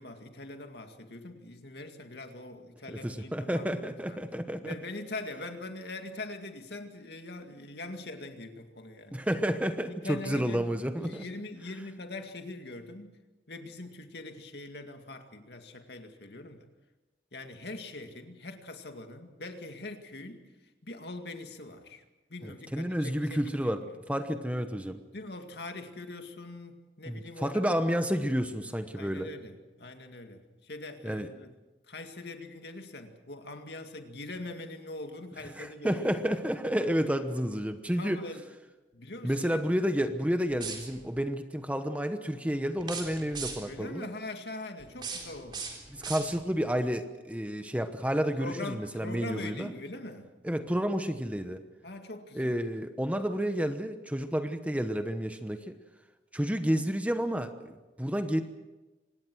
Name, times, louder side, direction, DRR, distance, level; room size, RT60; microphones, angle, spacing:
voice 1, 0.0-4.2 4.6-9.2 9.9-13.1 13.5-16.7 17.3-20.4 20.8-22.0 22.3-23.9 25.1-27.6 29.0-31.5 31.9-36.1 38.0-38.4 38.9-39.7 40.0-40.1 43.6-45.8 48.4-50.3 51.8-52.5, left 2 dB, 65° left, 6 dB, 2.1 m, -42 dB
voice 2, 2.9-4.8 9.1-11.2 22.4-25.0 27.1-29.3 31.0-31.3 35.5-38.2 39.2-44.1 45.9-49.7 50.4-51.6 52.3-55.7 56.3-58.4, equal, 10° right, 8 dB, 1.0 m, -30 dB
sound 1, 40.5-41.2 42.8-43.8 44.8-46.7, right 5 dB, 25° right, 3.8 m, -40 dB
25.5 x 19.5 x 6.3 m, 1.1 s
head